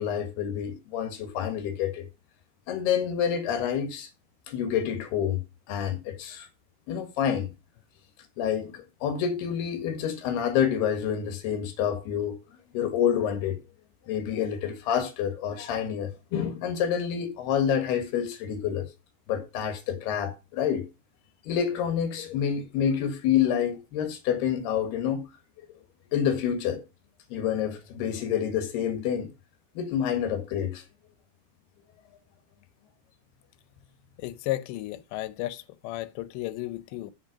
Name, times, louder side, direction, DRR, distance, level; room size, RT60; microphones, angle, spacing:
voice 1, 0.0-2.1 2.7-4.1 4.5-5.4 5.7-6.5 6.9-7.5 8.4-12.4 12.7-13.6 14.1-18.9 19.3-20.9 21.5-25.3 26.1-26.8 27.3-29.3 29.8-30.8, left 8 dB, 70° left, 3.5 m, -28 dB
voice 2, 34.2-37.1, left 16 dB, 90° left, 3.0 m, -34 dB
8.0 x 7.5 x 5.1 m
omnidirectional pair, 4.9 m